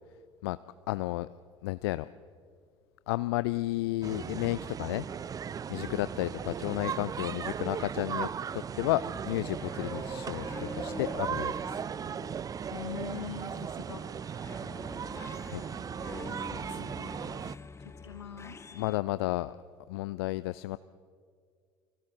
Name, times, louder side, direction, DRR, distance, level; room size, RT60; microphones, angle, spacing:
voice 1, 0.9-1.3 1.6-2.1 3.1-5.1 5.7-11.8 15.5-15.6 16.7-16.8 18.7-19.5 19.9-20.8, left 18 dB, 65° left, 16 dB, 0.4 m, -32 dB
sound 1, 4.0-17.6, right 7 dB, 25° right, 0.5 m, -37 dB
voice 2, 5.7-6.4 12.6-14.0 16.5-17.1 18.0-18.6, left 8 dB, 80° left, 5 dB, 2.4 m, -43 dB
sound 2, 9.6-13.7 14.2-19.0, left 4 dB, 20° left, 1.0 m, -46 dB
29.5 x 24.5 x 3.8 m, 2.1 s
figure-of-eight pair, 65°, 14 cm